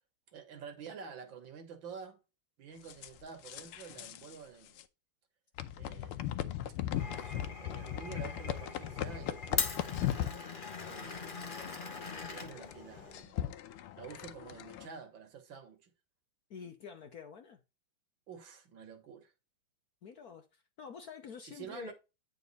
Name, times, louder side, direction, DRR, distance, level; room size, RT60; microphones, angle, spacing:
voice 1, 0.3-2.2 2.6-4.8 5.8-6.2 7.0-9.8 10.9-11.7 11.9-13.5 14.0-15.9 18.3-19.3 21.5-21.9, right 6 dB, 65° right, 1.9 m, -49 dB
sound 1, 2.9-4.4 4.7-4.8 5.6-14.9, left 12 dB, 90° left, 1.6 m, -39 dB
Glass, 7.0-13.2, left 5 dB, 35° left, 0.8 m, -41 dB
voice 2, 16.5-17.6 20.0-21.9, left 6 dB, 60° left, 1.1 m, -48 dB
9.2 x 4.1 x 4.0 m
omnidirectional pair, 2.3 m